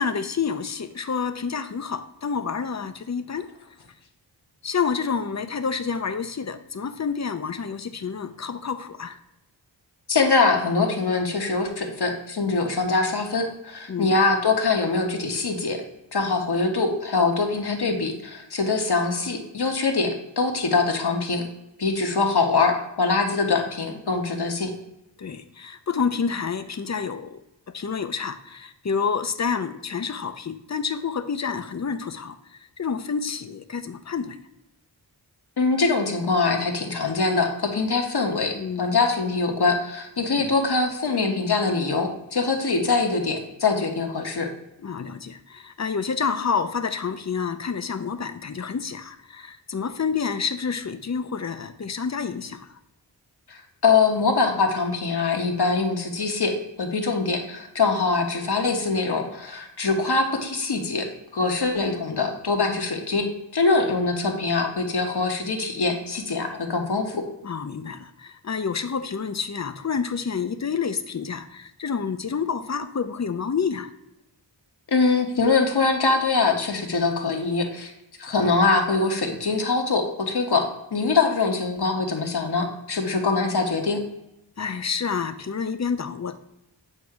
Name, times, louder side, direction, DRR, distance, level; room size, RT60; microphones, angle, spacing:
voice 1, 0.0-3.5 4.6-9.2 13.9-14.2 25.2-27.4 27.7-32.4 32.8-34.4 38.5-39.0 40.4-40.5 44.8-52.7 67.4-73.9 84.6-86.4, left 6 dB, 40° left, 11 dB, 0.6 m, -28 dB
voice 2, 10.1-15.8 16.1-21.5 21.8-24.7 35.6-44.5 53.5-61.1 61.3-67.2 74.9-77.9 78.2-84.0, left 4 dB, 60° left, 3 dB, 1.2 m, -23 dB
8.1 x 2.7 x 4.8 m, 0.87 s
wide cardioid pair, 55°, 45 cm